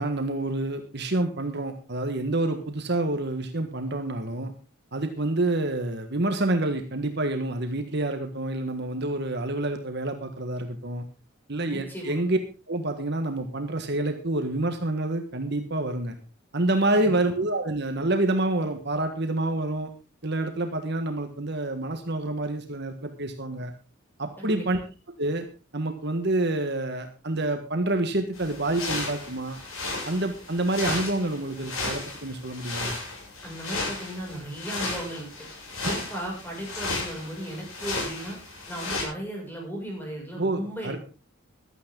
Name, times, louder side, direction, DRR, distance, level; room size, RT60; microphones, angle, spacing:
voice 1, 0.0-4.5 4.9-11.0 11.5-12.4 12.7-16.2 16.5-19.9 20.2-23.7 24.2-24.8 25.2-25.4 25.7-29.6 30.0-32.9 40.4-41.0, right 2 dB, 50° right, 6 dB, 1.6 m, -27 dB
voice 2, 11.6-12.2 16.9-17.1 24.4-24.6 33.4-35.3 35.9-38.4 38.7-41.0, equal, 10° left, -1 dB, 6.6 m, -36 dB
sound 1, 28.3-39.0, left 2 dB, 80° left, 7.2 m, -34 dB
15.5 x 12.0 x 3.9 m, 0.33 s
head